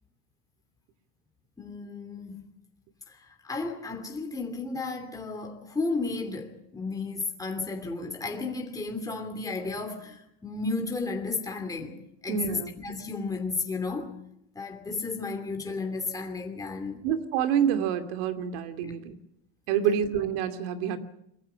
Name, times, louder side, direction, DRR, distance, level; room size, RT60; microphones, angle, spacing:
voice 1, 1.6-2.4 3.1-12.0 12.2-14.2 14.5-17.0 18.8-18.9 19.9-20.0, left 3 dB, 10° left, 2.8 m, -33 dB
voice 2, 12.3-12.7 17.0-19.1 19.7-21.0, right 8 dB, 75° right, 2.7 m, -27 dB
23.5 x 15.0 x 9.6 m
cardioid pair, 140°, 30 cm